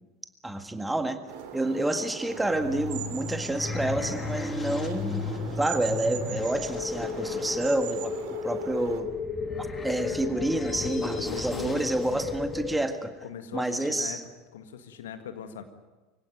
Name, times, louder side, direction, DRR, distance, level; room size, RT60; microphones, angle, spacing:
voice 1, 0.4-1.2 1.5-5.3 5.6-8.1 8.4-9.1 9.6-13.1 13.5-14.2, right 1 dB, 5° right, 8 dB, 1.9 m, -29 dB
sound 1, 1.3-9.0, right 8 dB, 55° right, 2.7 m, -40 dB
sound 2, 2.3-12.8, left 4 dB, 20° left, 2.3 m, -37 dB
sound 3, 6.4-12.8, left 5 dB, 40° left, 3.1 m, -34 dB
voice 2, 11.1-11.8 13.2-14.2 14.5-15.6, left 8 dB, 70° left, 9 dB, 1.8 m, -40 dB
24.5 x 17.0 x 9.2 m, 1.2 s
figure-of-eight pair, 75°, 0 cm